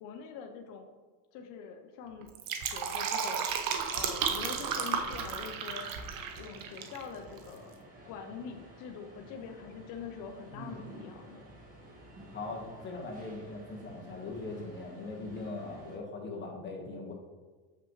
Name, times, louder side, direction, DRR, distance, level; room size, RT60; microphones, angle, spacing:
voice 1, 0.0-0.9 1.3-2.3 2.6-3.5 3.9-5.9 6.4-7.7 8.0-11.4, left 6 dB, 45° left, 4 dB, 0.6 m, -44 dB
Fill (with liquid), 2.2-7.0 7.3-7.4, right 7 dB, 45° right, 0.8 m, -33 dB
sound 1, 3.9-16.0, right 1 dB, 20° right, 1.3 m, -53 dB
voice 2, 10.5-11.0 12.3-17.1, left 3 dB, 25° left, -1 dB, 1.3 m, -40 dB
6.9 x 5.9 x 3.1 m, 1.4 s
cardioid pair, 145°, 45 cm